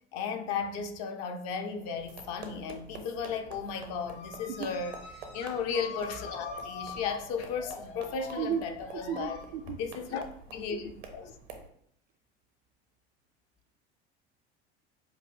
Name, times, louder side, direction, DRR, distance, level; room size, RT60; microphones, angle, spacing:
voice 1, 0.1-4.9 5.3-9.4 9.7-10.2 10.5-11.3, left 6 dB, 50° left, 0.6 m, -35 dB
sound 1, 1.6-2.5 2.8-11.4, left 5 dB, 75° left, 1.0 m, -45 dB
sound 2, 2.0-11.7, right 4 dB, 70° right, 0.8 m, -49 dB
voice 2, 8.9-9.8 10.1-10.2, right 8 dB, 50° right, 0.4 m, -34 dB
5.4 x 2.6 x 2.5 m
figure-of-eight pair, 70°, 32 cm